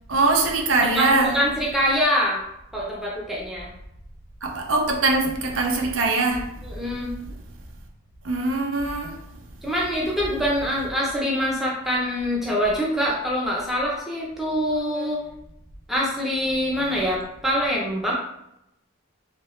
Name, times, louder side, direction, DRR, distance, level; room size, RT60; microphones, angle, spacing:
voice 1, 0.1-1.4 4.4-6.5 8.2-9.2, right 3 dB, 65° right, 1 dB, 0.6 m, -22 dB
voice 2, 0.9-2.4 2.7-3.7 6.6-7.1 9.6-15.2 15.9-18.1, equal, ahead, -5 dB, 0.6 m, -24 dB
3.1 x 2.9 x 3.0 m, 0.84 s
head